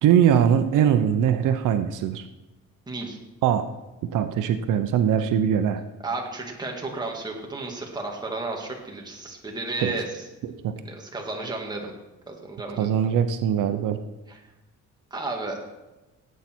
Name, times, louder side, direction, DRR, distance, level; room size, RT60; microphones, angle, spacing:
voice 1, 0.0-2.2 3.4-3.6 4.1-5.8 9.8-9.9 10.6-10.7 12.8-14.0, right 9 dB, 85° right, 9 dB, 0.8 m, -21 dB
voice 2, 2.9-3.2 6.0-10.2 10.8-11.9 12.3-12.9 14.3-14.4 15.1-15.6, right 2 dB, 15° right, 0 dB, 2.0 m, -33 dB
17.5 x 8.4 x 4.5 m, 1.1 s
cardioid pair, 160°, 31 cm